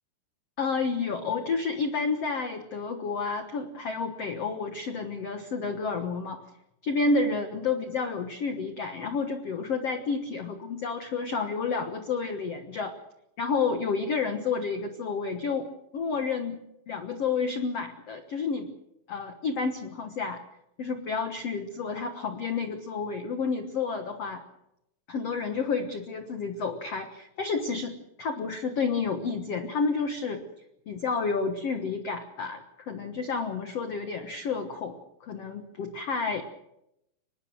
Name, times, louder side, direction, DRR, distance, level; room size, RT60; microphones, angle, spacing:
voice 1, 0.6-6.4 6.8-12.9 13.4-15.7 15.9-18.7 19.1-20.4 20.8-24.4 25.1-30.4 30.9-36.4, left 4 dB, 90° left, 7 dB, 1.3 m, -30 dB
25.0 x 20.5 x 6.4 m, 0.83 s
omnidirectional pair, 5.1 m